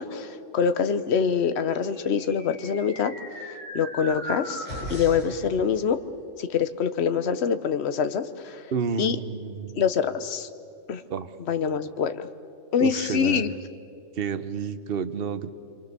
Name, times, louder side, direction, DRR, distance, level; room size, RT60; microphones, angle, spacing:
voice 1, 0.0-3.1 3.7-6.0 6.4-8.6 9.0-9.2 9.7-10.5 10.9-11.0 11.5-12.3 12.7-13.5, left 7 dB, 55° left, 11 dB, 1.2 m, -25 dB
sound 1, 1.7-5.4, equal, 25° left, 7.0 m, -38 dB
voice 2, 8.7-9.8 11.1-11.3 12.8-13.5 14.1-15.5, right 6 dB, 50° right, 10 dB, 1.1 m, -30 dB
27.0 x 25.0 x 6.8 m, 2.6 s
omnidirectional pair, 1.3 m